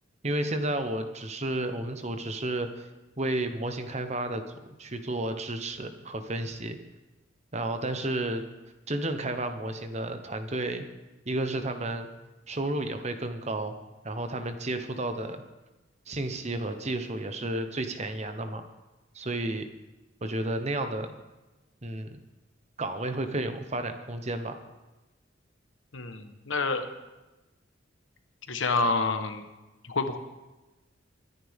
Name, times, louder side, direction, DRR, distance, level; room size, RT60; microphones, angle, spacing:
voice 1, 0.2-2.9 3.2-6.8 7.5-8.4 8.9-10.9 11.3-12.1 12.5-13.8 14.0-15.4 16.1-18.6 19.1-19.7 20.2-21.1 21.8-22.2 22.8-24.6, right 1 dB, 35° right, 8 dB, 1.1 m, -32 dB
voice 2, 25.9-26.8 28.5-29.5 29.8-30.2, left 3 dB, 80° left, 7 dB, 1.2 m, -28 dB
23.5 x 10.0 x 3.7 m, 1.1 s
head